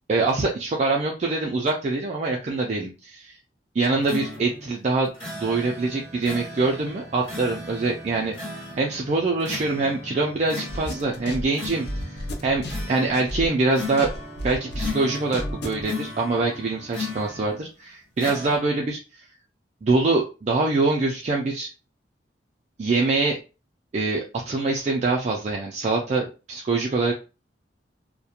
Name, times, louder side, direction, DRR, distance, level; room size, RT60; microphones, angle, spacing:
voice 1, 0.1-3.4 3.8-8.4 8.8-12.2 12.4-14.1 14.4-19.3 19.8-21.7 22.8-23.4 23.9-27.1, right 3 dB, 40° right, -1 dB, 0.4 m, -24 dB
sound 1, 3.9-17.7 18.2-18.6, left 2 dB, 30° left, 1.3 m, -37 dB
sound 2, 10.7-13.6 14.0-15.8, left 1 dB, 65° left, 0.5 m, -32 dB
2.3 x 2.1 x 2.8 m, 0.31 s
head